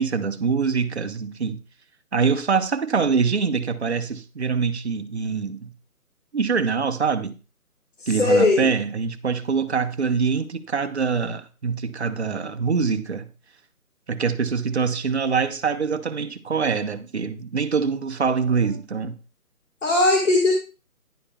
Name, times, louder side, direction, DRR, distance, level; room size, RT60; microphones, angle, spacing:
voice 1, 0.0-1.6 2.1-5.7 6.3-7.4 8.1-13.3 14.1-19.2, right 5 dB, 45° right, 0.8 m, -24 dB
voice 2, 8.0-8.7 19.8-20.5, left 2 dB, 55° left, 1.8 m, -19 dB
11.0 x 10.5 x 2.3 m
figure-of-eight pair, 160°, 45 cm